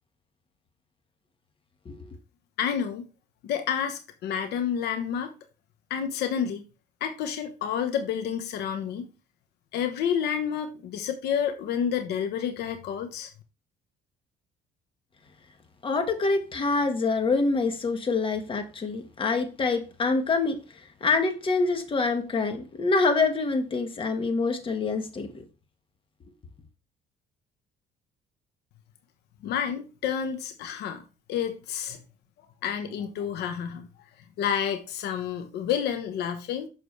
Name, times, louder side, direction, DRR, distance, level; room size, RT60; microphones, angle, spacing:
voice 1, 2.6-3.0 3.4-5.3 5.9-6.6 7.0-9.1 9.7-13.3 29.4-32.0 32.6-33.9 34.4-36.7, left 8 dB, 75° left, 1.0 m, -29 dB
voice 2, 15.8-25.4, left 3 dB, 30° left, 1.5 m, -26 dB
7.2 x 6.2 x 3.2 m
cardioid pair, 110°, 17 cm